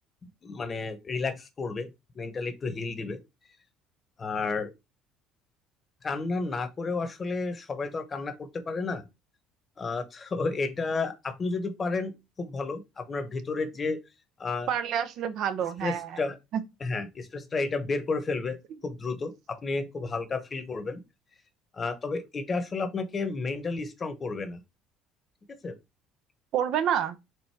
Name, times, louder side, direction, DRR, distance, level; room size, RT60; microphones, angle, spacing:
voice 1, 0.4-3.2 4.2-4.7 6.0-9.1 9.8-14.0 14.4-14.7 15.8-16.4 16.8-18.6 18.8-21.0 21.7-24.6 25.5-25.7, left 3 dB, 35° left, 1.0 m, -32 dB
voice 2, 14.7-16.2 16.5-16.6 26.5-27.2, right 9 dB, 65° right, 0.6 m, -28 dB
4.6 x 2.6 x 4.5 m
supercardioid pair, 80°, 0 cm